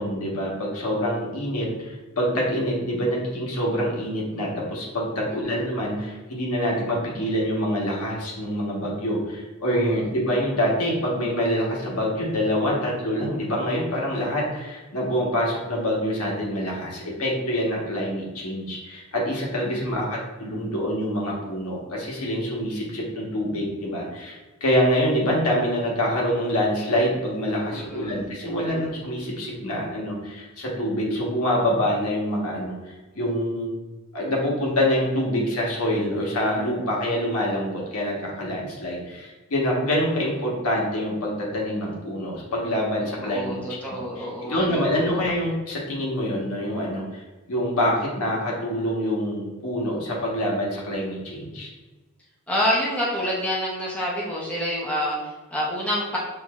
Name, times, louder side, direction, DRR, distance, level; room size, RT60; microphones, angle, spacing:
voice 1, 0.0-33.7 34.1-43.6 44.2-47.2 47.5-51.7, equal, 80° left, -3 dB, 1.2 m, -26 dB
voice 2, 19.9-20.2 27.7-28.2 28.5-28.9 43.2-44.8 45.1-45.2 52.5-56.2, equal, 5° left, -5 dB, 0.7 m, -28 dB
6.9 x 2.6 x 2.4 m, 1.2 s
head